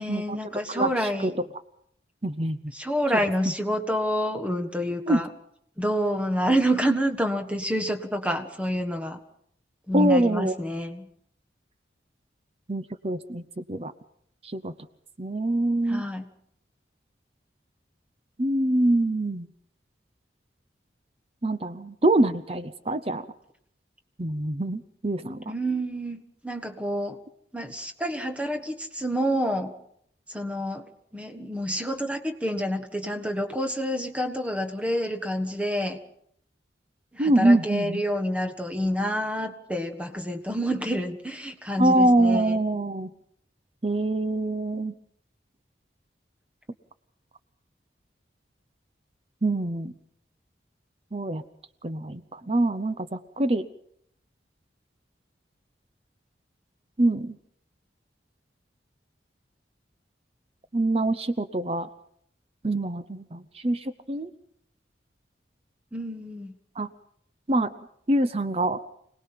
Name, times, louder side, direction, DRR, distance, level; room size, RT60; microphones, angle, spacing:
voice 1, 0.0-1.3 2.7-5.3 5.8-9.2 9.9-11.1 15.9-16.3 25.5-27.2 27.5-29.7 30.3-36.0 37.1-42.6 65.9-66.5, equal, 5° right, 6 dB, 1.5 m, -28 dB
voice 2, 2.2-2.6 5.1-5.2 9.9-10.6 12.7-13.9 14.5-14.7 15.2-16.0 18.4-19.5 21.4-23.2 24.2-25.5 37.2-38.0 41.8-43.1 43.8-44.9 49.4-49.9 51.1-51.4 51.8-53.7 57.0-57.4 60.7-61.9 62.6-64.3 66.8-66.9 67.5-67.7 68.1-68.8, right 1 dB, 35° right, 11 dB, 0.7 m, -24 dB
26.0 x 19.0 x 5.8 m, 0.69 s
head